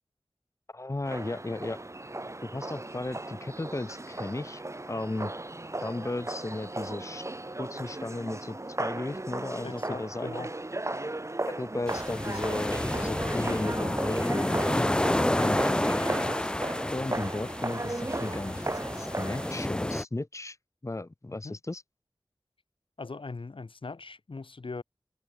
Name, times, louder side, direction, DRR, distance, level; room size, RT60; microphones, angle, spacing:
voice 1, 0.7-1.8 2.4-4.6 4.9-5.3 5.8-7.3 7.6-10.5 11.6-14.9 15.3-15.6 16.1-16.5 16.9-18.6 18.9-20.6 20.8-21.8, left 2 dB, 35° left, 1.6 m, -35 dB
sound 1, 1.1-19.5, right 2 dB, 35° right, 3.0 m, -36 dB
voice 2, 9.6-10.5 14.9-15.3 21.4-21.6 23.0-24.8, left 3 dB, 80° left, 5.8 m, -40 dB
sound 2, 11.9-20.0, left 1 dB, 10° left, 0.3 m, -29 dB
wide cardioid pair, 55°, 9 cm